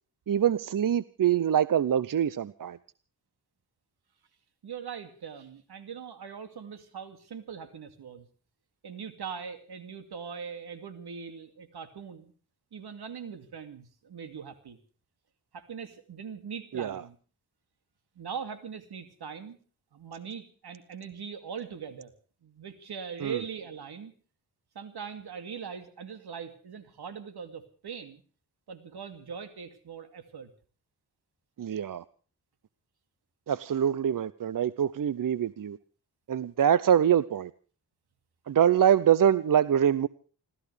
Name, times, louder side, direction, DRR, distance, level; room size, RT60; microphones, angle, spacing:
voice 1, 0.3-2.8 16.7-17.0 23.2-23.3 31.6-32.0 33.5-35.8 36.3-37.5 38.5-40.1, right 9 dB, 55° right, 17 dB, 0.7 m, -24 dB
voice 2, 4.6-8.3 8.8-12.3 12.7-14.8 15.5-17.2 18.2-19.6 19.9-22.1 22.4-24.1 24.7-28.2 28.7-30.5, right 6 dB, 80° right, 9 dB, 2.6 m, -41 dB
29.5 x 14.0 x 3.4 m, 0.39 s
wide cardioid pair, 100°, 38 cm